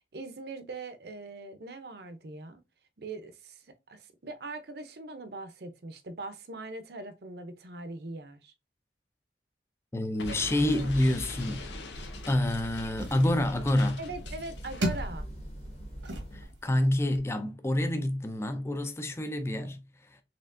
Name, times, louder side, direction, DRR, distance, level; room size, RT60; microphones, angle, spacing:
voice 1, 0.0-2.6 3.0-3.6 3.9-8.5 10.3-10.4 10.7-10.9 14.0-15.3, right 3 dB, 60° right, 0.6 m, -41 dB
voice 2, 9.9-11.7 12.3-14.0 16.3-20.2, left 1 dB, 15° left, 0.4 m, -28 dB
Explosion, 10.2-15.0, left 3 dB, 75° left, 0.8 m, -43 dB
sound 1, 10.7-16.5, equal, 35° left, 1.2 m, -43 dB
sound 2, 11.9-17.2, equal, 85° right, 1.1 m, -38 dB
4.3 x 3.4 x 2.5 m
head